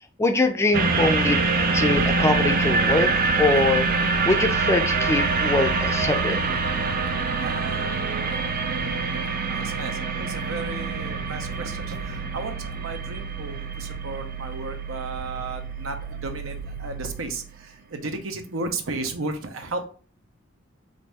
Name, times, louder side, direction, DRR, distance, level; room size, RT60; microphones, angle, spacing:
voice 1, 0.2-1.4 1.7-3.1 3.4-3.9 4.3-6.4, left 2 dB, 15° left, 7 dB, 0.4 m, -23 dB
sound 1, 0.7-15.5 16.0-16.1, right 3 dB, 45° right, 0.5 m, -25 dB
sound 2, 1.9-17.7, right 6 dB, 85° left, 0.5 m, -36 dB
voice 2, 7.4-8.4 9.5-19.9, right 3 dB, 85° right, 6 dB, 0.7 m, -34 dB
4.0 x 2.6 x 3.3 m, 0.40 s
head